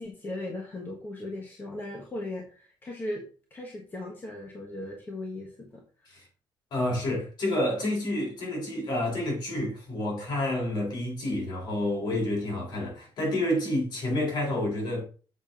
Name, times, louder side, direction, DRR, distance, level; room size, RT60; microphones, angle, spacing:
voice 1, 0.0-3.2 3.5-6.2, left 1 dB, 25° left, 1.3 m, -38 dB
voice 2, 6.7-15.0, left 1 dB, 60° left, 4.1 m, -29 dB
7.5 x 6.1 x 3.8 m
cardioid pair, 170°, 9 cm